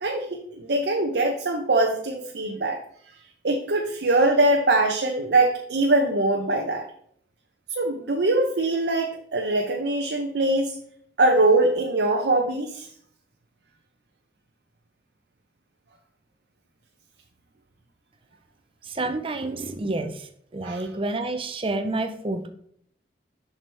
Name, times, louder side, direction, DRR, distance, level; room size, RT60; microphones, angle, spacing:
voice 1, 0.0-2.8 3.4-6.8 7.7-10.7 11.2-12.9 20.6-20.8, right 2 dB, 60° right, 2 dB, 0.7 m, -22 dB
voice 2, 18.9-20.3 20.5-22.5, right 2 dB, 30° right, 7 dB, 0.6 m, -29 dB
7.6 x 5.9 x 3.4 m, 0.65 s
head